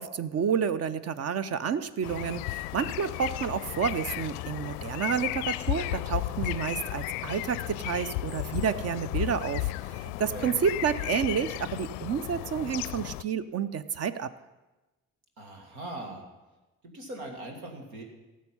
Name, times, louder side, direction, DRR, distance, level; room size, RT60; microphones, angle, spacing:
voice 1, 0.0-14.3, right 7 dB, 35° right, 15 dB, 0.6 m, -30 dB
sound 1, 2.0-13.2, left 18 dB, 60° left, 0.5 m, -34 dB
voice 2, 10.2-10.6 15.4-16.3 16.8-18.0, right 1 dB, 75° right, 3 dB, 1.8 m, -40 dB
17.0 x 7.3 x 5.6 m, 1.1 s
figure-of-eight pair, 45°, 43 cm